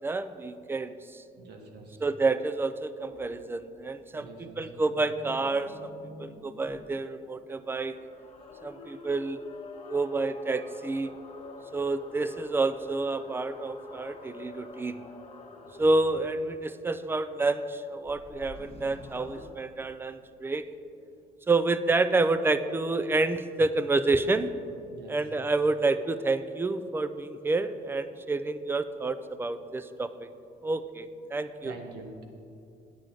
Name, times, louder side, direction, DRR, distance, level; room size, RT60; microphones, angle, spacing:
voice 1, 0.0-1.2 2.0-5.9 6.2-8.0 8.6-9.4 9.9-11.1 11.7-15.0 15.8-20.7 21.5-24.5 25.1-30.3 30.6-31.7, right 3 dB, 15° right, 12 dB, 0.4 m, -29 dB
voice 2, 1.4-2.0 4.1-4.6 24.9-25.2 31.6-32.2, right 3 dB, 80° right, 3 dB, 1.3 m, -45 dB
sound 1, 3.0-3.4 4.5-6.9 7.6-16.6 18.0-19.5, left 2 dB, 35° left, 1.0 m, -46 dB
9.2 x 8.7 x 3.8 m, 2.5 s
cardioid pair, 110°, 17 cm